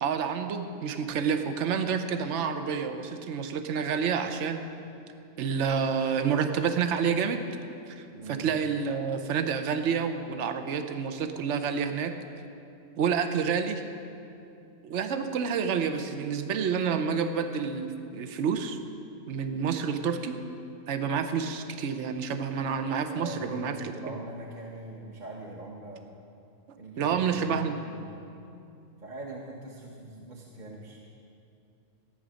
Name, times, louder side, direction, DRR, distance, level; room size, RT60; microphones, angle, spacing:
voice 1, 0.0-4.6 5.4-7.4 7.9-12.1 13.0-13.9 14.8-18.8 19.3-20.4 20.9-23.9 27.0-27.8, right 6 dB, 70° right, 8 dB, 1.1 m, -29 dB
voice 2, 8.1-8.5 23.1-26.1 26.8-27.6 27.9-28.2 29.0-31.0, right 2 dB, 40° right, -2 dB, 1.1 m, -42 dB
14.0 x 9.5 x 6.3 m, 2.6 s
omnidirectional pair, 1.3 m